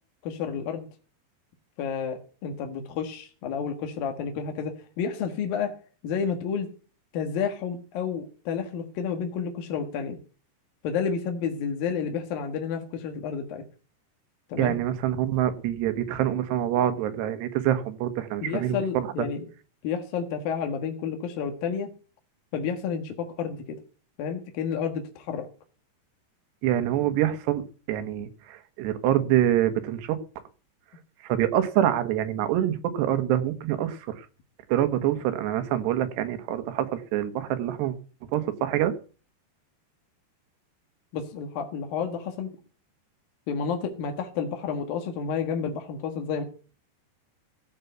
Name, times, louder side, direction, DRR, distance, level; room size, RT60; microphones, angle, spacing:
voice 1, 0.2-0.9 1.8-5.8 6.0-6.7 7.1-10.2 10.8-13.6 14.5-14.7 18.4-19.4 19.8-21.9 22.5-23.6 24.2-25.5 41.1-42.6 43.5-46.4, left 6 dB, 65° left, 5 dB, 3.1 m, -30 dB
voice 2, 14.6-19.3 26.6-30.2 31.2-34.3 34.7-37.9 38.3-38.9, right 11 dB, 80° right, 9 dB, 3.4 m, -26 dB
15.0 x 6.9 x 8.0 m, 0.38 s
omnidirectional pair, 4.8 m